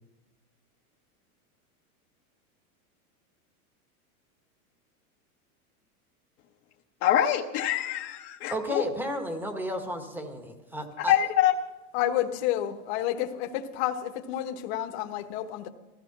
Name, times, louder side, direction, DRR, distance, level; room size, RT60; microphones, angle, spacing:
voice 1, 7.0-8.8 11.0-11.5, left 12 dB, 30° left, 0 dB, 0.9 m, -25 dB
voice 2, 8.5-11.2, equal, 5° right, 6 dB, 1.2 m, -33 dB
voice 3, 11.9-15.7, left 12 dB, 45° left, 6 dB, 1.2 m, -30 dB
16.0 x 14.5 x 5.9 m, 1.1 s
supercardioid pair, 160°, 44 cm